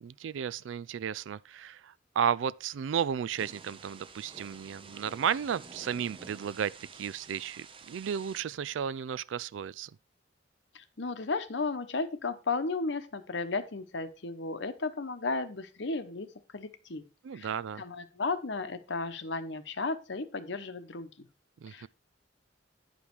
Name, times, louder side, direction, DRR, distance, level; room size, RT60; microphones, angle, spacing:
voice 1, 0.0-9.9 17.2-17.8 21.6-21.9, right 8 dB, 80° right, 0.3 m, -33 dB
Thunder / Rain, 3.4-8.4, right 4 dB, 30° right, 0.6 m, -50 dB
voice 2, 10.7-16.3 16.5-17.0 17.3-17.5 17.8-21.3 21.7-21.9, left 3 dB, 65° left, 0.9 m, -34 dB
10.0 x 5.3 x 4.5 m
head